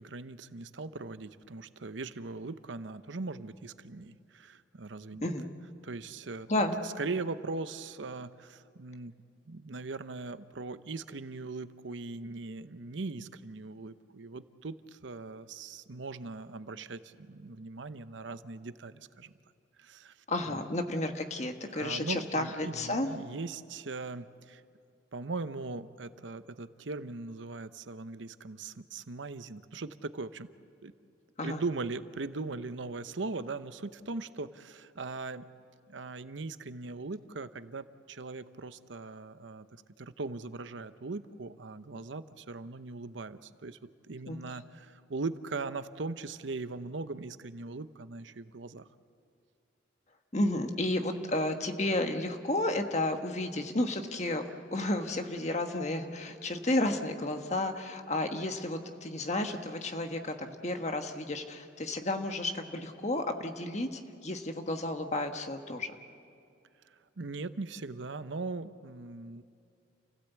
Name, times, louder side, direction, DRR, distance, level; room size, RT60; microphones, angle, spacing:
voice 1, 0.0-5.3 5.8-6.5 6.8-9.1 9.5-19.3 19.8-20.1 20.5-20.6 21.7-24.6 25.1-30.5 30.8-30.9 31.4-35.5 35.9-39.7 40.0-43.8 44.1-48.9 67.2-69.4, right 3 dB, 80° right, 12 dB, 0.8 m, -40 dB
voice 2, 20.3-23.1 31.4-31.6 44.3-44.4 50.3-54.4 54.7-65.9, left 1 dB, 35° left, 5 dB, 1.5 m, -32 dB
29.0 x 16.5 x 8.2 m, 2.5 s
head